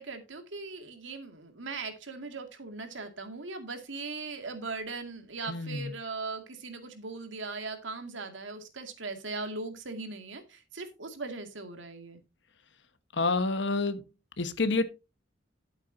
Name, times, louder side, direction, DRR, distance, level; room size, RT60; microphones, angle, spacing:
voice 1, 0.0-12.2, right 3 dB, 90° right, 2.2 m, -39 dB
voice 2, 5.5-5.9 13.1-14.0 14.4-14.8, left 3 dB, 70° left, 1.2 m, -28 dB
12.0 x 8.3 x 2.7 m
head